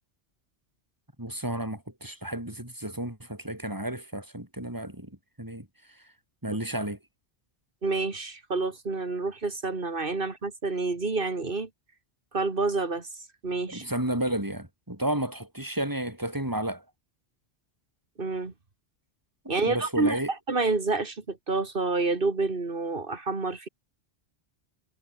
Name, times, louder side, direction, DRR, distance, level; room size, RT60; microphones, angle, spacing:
voice 1, 1.2-5.1 5.4-5.7 6.4-7.0 13.7-16.8 19.7-20.3, right 1 dB, 15° right, 5.2 m, -32 dB
voice 2, 7.8-11.7 12.3-13.1 13.4-13.9 18.2-18.5 19.5-20.2 20.5-23.7, right 3 dB, 50° right, 2.4 m, -28 dB
omnidirectional pair, 1.2 m